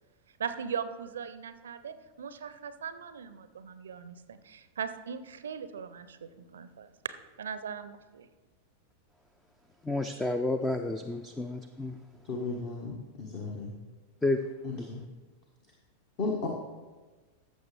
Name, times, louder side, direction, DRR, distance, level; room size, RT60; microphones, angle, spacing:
voice 1, 0.4-8.3, right 7 dB, 65° right, 12 dB, 0.5 m, -39 dB
voice 2, 9.9-11.9 14.2-14.4 14.7-14.9, left 2 dB, 10° left, 8 dB, 0.4 m, -30 dB
voice 3, 12.2-13.8 14.6-15.0 16.2-16.5, left 3 dB, 40° left, 0 dB, 1.3 m, -34 dB
14.5 x 6.7 x 3.3 m, 1.3 s
figure-of-eight pair, 90°, 0 cm